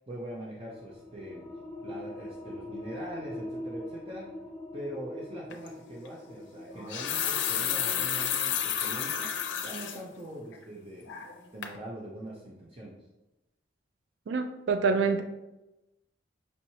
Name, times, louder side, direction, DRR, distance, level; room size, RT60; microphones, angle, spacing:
voice 1, 0.0-1.5 1.8-4.3 4.7-9.3 9.6-13.0, right 1 dB, 30° right, -4 dB, 0.6 m, -42 dB
sound 1, 0.6-11.8, left 1 dB, 20° left, 1.4 m, -44 dB
sound 2, 5.5-5.7 6.7-10.0 10.5-10.6 11.1-11.4 11.6-11.8, left 9 dB, 80° left, 0.5 m, -31 dB
voice 2, 14.3-15.2, right 5 dB, 80° right, 7 dB, 0.4 m, -26 dB
5.4 x 3.0 x 2.7 m, 0.97 s
head